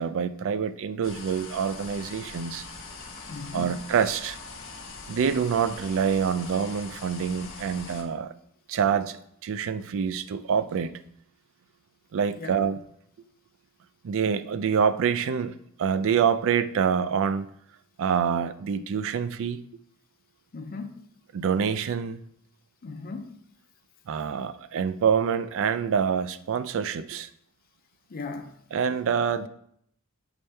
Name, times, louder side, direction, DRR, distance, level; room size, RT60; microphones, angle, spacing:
voice 1, 0.0-2.6 3.5-4.4 5.1-8.3 8.7-9.2 9.4-10.9 12.1-12.8 14.0-17.5 18.0-19.6 21.3-22.2 24.1-27.3 28.7-29.5, right 7 dB, 65° right, 13 dB, 0.4 m, -26 dB
sound 1, 1.0-8.0, left 4 dB, 65° left, 1.1 m, -42 dB
voice 2, 3.3-3.7 12.4-12.6 20.5-21.1 22.8-23.4 28.1-28.6, left 4 dB, 45° left, 6 dB, 0.5 m, -37 dB
7.0 x 4.4 x 3.3 m, 0.70 s
head